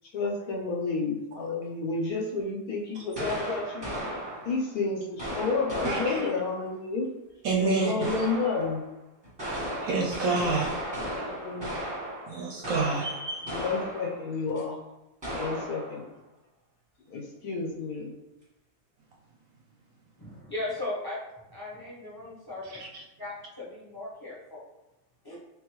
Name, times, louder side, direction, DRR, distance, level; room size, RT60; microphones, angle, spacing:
voice 1, 0.1-3.9 4.4-7.1 7.6-8.8 11.2-11.7 13.5-14.8 15.3-16.1 17.1-18.1, left 3 dB, 70° left, 0 dB, 1.1 m, -31 dB
sound 1, 3.1-4.7 5.2-6.6 8.0-8.8 9.2-14.3 14.6-14.7 15.2-16.0, equal, 20° right, 0.9 m, -35 dB
voice 2, 5.8-6.2 7.4-8.1 9.8-10.7 12.3-13.6 22.7-23.0, right 3 dB, 70° right, -2 dB, 0.9 m, -28 dB
voice 3, 20.2-21.2 21.5-22.8 23.2-24.6 25.2-25.4, left 2 dB, 20° left, -8 dB, 0.7 m, -37 dB
3.5 x 3.4 x 3.1 m, 0.97 s
omnidirectional pair, 1.8 m